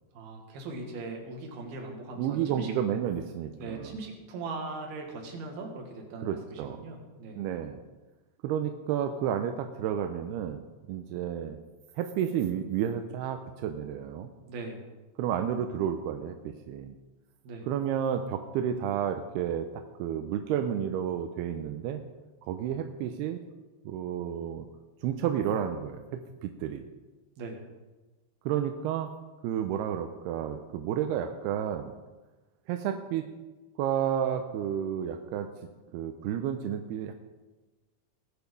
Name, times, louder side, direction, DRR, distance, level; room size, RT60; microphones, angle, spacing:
voice 1, 0.1-2.7 3.5-7.4 14.5-14.8 17.4-17.7 27.4-27.6, right 3 dB, 65° right, 1 dB, 3.7 m, -40 dB
voice 2, 2.2-3.9 6.2-6.9 7.4-7.8 8.4-11.6 12.0-14.3 15.2-17.0 17.7-22.0 22.4-23.4 23.9-24.7 25.0-26.8 28.5-29.1 29.4-31.9 32.7-33.2 33.8-35.5 35.9-37.1, right 9 dB, 85° right, 6 dB, 2.6 m, -31 dB
19.5 x 7.1 x 5.4 m, 1.2 s
omnidirectional pair, 4.8 m